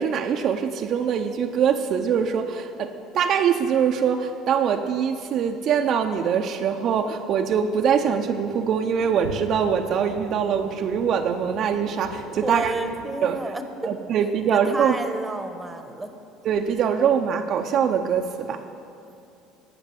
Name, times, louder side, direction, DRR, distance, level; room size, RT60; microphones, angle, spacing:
voice 1, 0.0-12.7 13.2-13.4 13.8-15.0 16.4-18.6, right 7 dB, 55° right, 4 dB, 0.6 m, -23 dB
sound 1, 7.9-13.1, right 4 dB, 90° right, 0.8 m, -40 dB
voice 2, 12.4-13.9 14.4-16.1, right 2 dB, 15° right, 7 dB, 1.0 m, -31 dB
14.5 x 5.2 x 7.8 m, 2.7 s
supercardioid pair, 85°, 0 cm